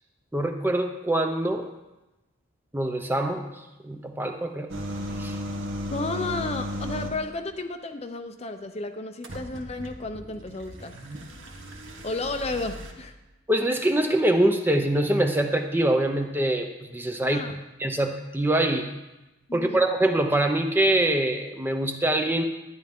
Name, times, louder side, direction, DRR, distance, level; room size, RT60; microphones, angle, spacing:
voice 1, 0.3-1.7 2.7-3.5 3.8-4.7 5.2-5.4 13.5-17.5 17.8-18.9 19.5-22.4, right 1 dB, 10° right, 5 dB, 0.6 m, -24 dB
sound 1, 4.7-7.3 9.2-12.9, equal, 70° right, 1.3 m, -35 dB
voice 2, 5.9-10.9 12.0-13.1 17.2-17.5 19.5-19.9, left 2 dB, 30° left, 7 dB, 0.6 m, -32 dB
11.5 x 10.5 x 3.6 m, 1.0 s
head